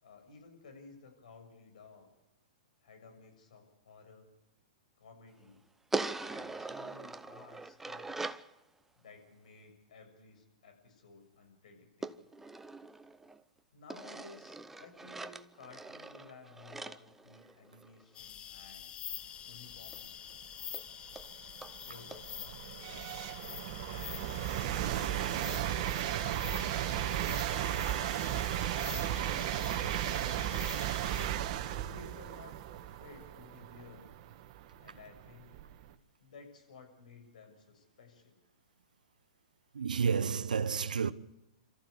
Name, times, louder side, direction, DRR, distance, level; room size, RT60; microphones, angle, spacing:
voice 1, 0.0-2.1 2.8-4.3 5.0-5.7 6.1-8.4 9.0-12.3 13.7-18.9 19.5-20.3 21.8-23.2 23.8-28.0 28.7-30.4 31.8-34.1 34.8-35.5 36.2-38.4, left 4 dB, 75° left, 6.9 m, -56 dB
sound 1, 5.9-8.5 12.0-13.4 13.9-18.0 19.9-20.0 20.3-20.4 20.7-20.8 21.2-21.3 21.6-21.7 22.1-22.2, right 3 dB, 5° right, 0.7 m, -41 dB
sound 2, 18.1-31.3, left 9 dB, 25° left, 0.8 m, -46 dB
sound 3, 20.4-20.5 21.1-35.9, right 12 dB, 50° right, 1.6 m, -35 dB
voice 2, 39.7-41.1, right 6 dB, 90° right, 1.0 m, -30 dB
27.5 x 14.5 x 8.3 m
hypercardioid pair, 125°, 4 cm